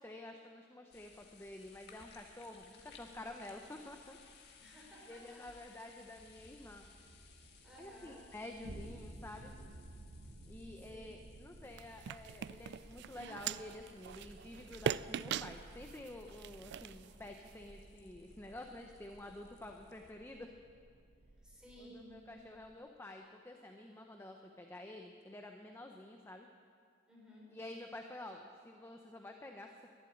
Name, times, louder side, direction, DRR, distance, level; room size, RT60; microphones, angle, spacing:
voice 1, 0.0-4.2 5.1-6.9 7.8-9.5 10.5-20.5 21.8-26.5 27.5-29.9, left 1 dB, 10° left, 3 dB, 0.7 m, -50 dB
sound 1, 0.9-20.1, left 4 dB, 55° left, 1.6 m, -63 dB
voice 2, 4.6-5.4 7.6-8.2 10.8-11.1 21.4-22.3 27.1-27.6, equal, 5° right, -5 dB, 4.8 m, -56 dB
sound 2, 6.2-22.8, right 1 dB, 75° right, 1.2 m, -56 dB
sound 3, 11.7-17.7, right 8 dB, 55° right, 0.3 m, -42 dB
12.0 x 11.5 x 9.8 m, 2.2 s
head